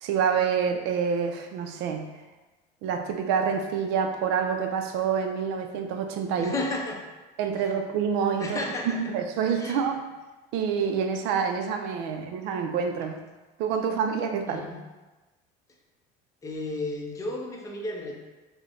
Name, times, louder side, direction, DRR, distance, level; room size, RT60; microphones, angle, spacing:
voice 1, 0.0-2.1 2.8-6.5 7.4-8.6 8.9-10.0 10.5-13.2 13.6-14.6, right 6 dB, 60° right, 5 dB, 0.4 m, -27 dB
voice 2, 6.4-7.1 7.6-7.7 8.4-9.0 9.6-9.9 12.1-12.2 14.5-14.8 16.4-18.1, left 2 dB, 15° left, -1 dB, 0.5 m, -33 dB
3.1 x 2.1 x 3.7 m, 1.2 s
cardioid pair, 145°, 20 cm